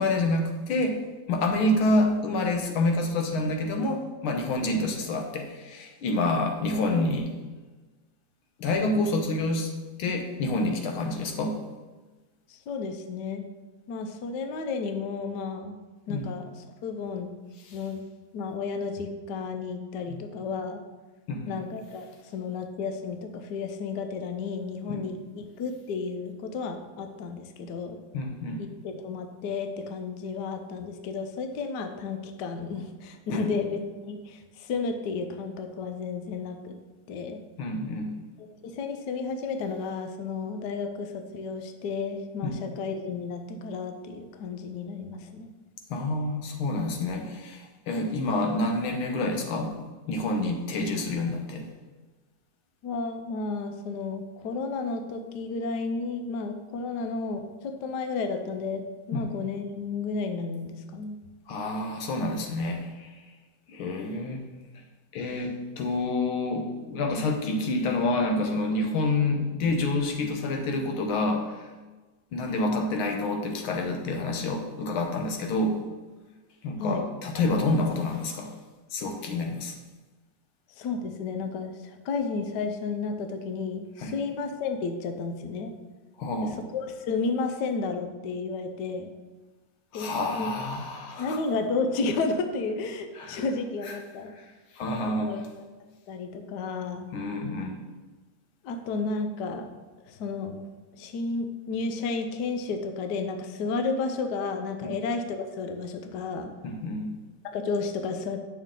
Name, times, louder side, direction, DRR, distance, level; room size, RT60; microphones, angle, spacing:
voice 1, 0.0-7.3 8.6-9.7 10.0-11.6 16.1-16.3 17.6-17.8 20.1-20.2 21.3-21.6 24.9-25.0 28.1-28.6 33.3-33.5 37.6-38.2 42.4-42.6 45.9-49.8 50.1-51.7 59.1-59.3 61.5-63.1 63.7-64.4 65.1-71.7 72.3-75.8 76.6-78.5 78.9-79.8 84.0-84.2 86.2-86.6 89.9-91.4 93.1-93.5 93.8-94.0 94.4-94.5 94.7-95.5 97.1-97.8 104.8-105.0 106.6-107.1, left 2 dB, 90° left, 3 dB, 1.8 m, -28 dB
voice 2, 12.5-13.4 13.9-15.8 16.1-16.5 16.8-17.3 17.7-18.0 18.3-20.8 21.5-28.0 28.6-36.8 37.1-37.4 38.4-45.5 52.8-58.8 59.1-61.2 76.8-77.1 80.8-85.7 86.4-89.1 89.9-90.6 91.2-94.3 95.0-95.5 96.1-97.1 98.6-99.7 100.0-100.5 101.0-106.5 107.5-108.4, left 4 dB, 65° left, 6 dB, 1.2 m, -32 dB
9.0 x 6.4 x 3.8 m, 1.2 s
omnidirectional pair, 2.2 m